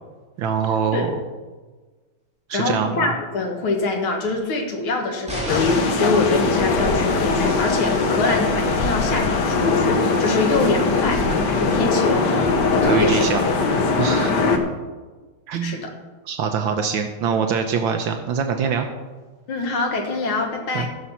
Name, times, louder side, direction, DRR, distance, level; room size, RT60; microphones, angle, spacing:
voice 1, 0.4-1.1 2.5-3.1 12.8-13.4 13.9-14.4 15.5-15.8 16.3-18.9 20.7-20.9, right 6 dB, 70° right, 6 dB, 1.5 m, -24 dB
voice 2, 2.5-13.4 13.6-14.0 15.6-16.0 19.5-20.9, left 3 dB, 75° left, 3 dB, 2.4 m, -24 dB
sound 1, 5.3-6.1 7.7-7.8, right 1 dB, 5° right, 2.1 m, -31 dB
sound 2, 5.5-14.6, left 4 dB, 60° left, 1.5 m, -20 dB
14.5 x 6.1 x 5.7 m, 1.3 s
omnidirectional pair, 2.3 m